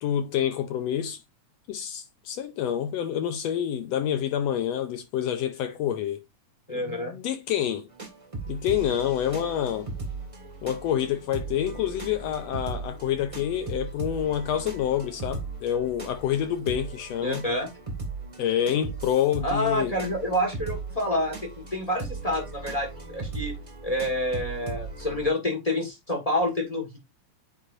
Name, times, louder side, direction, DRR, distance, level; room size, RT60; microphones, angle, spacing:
voice 1, 0.0-1.2 1.7-6.2 6.7-7.9 8.5-9.9 10.6-17.5 18.4-19.9, left 10 dB, 75° left, 1.6 m, -27 dB
voice 2, 6.7-7.1 17.2-17.7 19.4-23.5 23.8-27.0, left 1 dB, 25° left, 0.8 m, -28 dB
sound 1, 7.9-25.3, right 3 dB, 20° right, 1.0 m, -38 dB
9.6 x 4.3 x 2.5 m
omnidirectional pair, 3.4 m